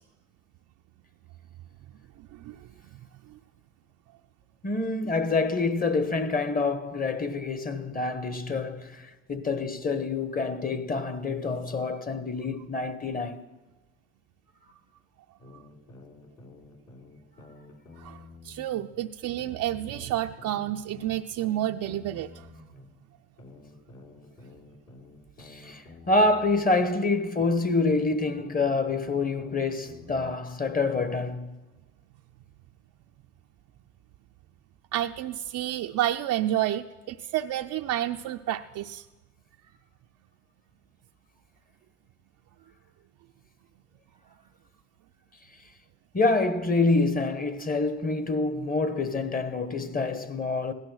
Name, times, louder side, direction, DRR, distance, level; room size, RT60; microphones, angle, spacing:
voice 1, 2.2-2.6 3.3-3.4 18.0-22.5 34.9-39.0, right 12 dB, 80° right, 0.5 m, -30 dB
voice 2, 4.6-13.4 25.4-31.6 46.1-50.7, left 3 dB, 30° left, 1.1 m, -27 dB
sound 1, 15.4-18.9 19.4-22.9 23.4-26.9 27.4-30.3, left 3 dB, 65° left, 3.7 m, -50 dB
17.0 x 12.0 x 6.2 m
cardioid pair, 90°, 30 cm